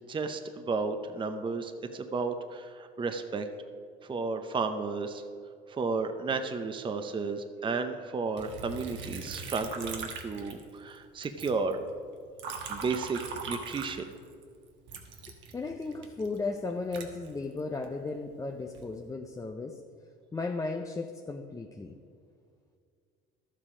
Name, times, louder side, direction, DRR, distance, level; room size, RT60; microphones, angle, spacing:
voice 1, 0.1-3.5 4.0-5.2 5.7-11.8 12.7-13.2 13.5-14.0, right 4 dB, 25° right, 8 dB, 0.7 m, -33 dB
Liquid, 8.4-11.0 11.2-14.4 14.9-17.9 18.5-19.0, right 5 dB, 70° right, 1.3 m, -41 dB
voice 2, 15.5-19.8 20.3-22.0, left 3 dB, 15° left, 4 dB, 0.6 m, -35 dB
12.0 x 7.6 x 4.9 m, 2.2 s
supercardioid pair, 85°, 20 cm